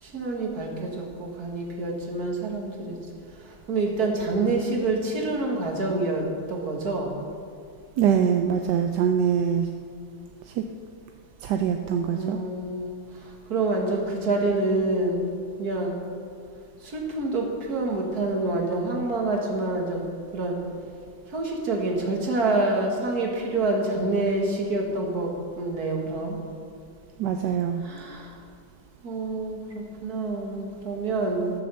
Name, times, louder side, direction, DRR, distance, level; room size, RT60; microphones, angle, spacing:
voice 1, 0.0-3.0 3.3-7.2 11.7-16.0 16.8-20.0 20.3-20.6 21.3-26.4 27.8-28.4 29.0-31.5, right 2 dB, 55° right, 0 dB, 2.2 m, -27 dB
voice 2, 8.0-9.7 10.5-10.6 11.4-12.4 27.2-27.8, right 8 dB, 70° right, 5 dB, 1.1 m, -23 dB
13.5 x 6.9 x 6.8 m, 2.2 s
omnidirectional pair, 2.1 m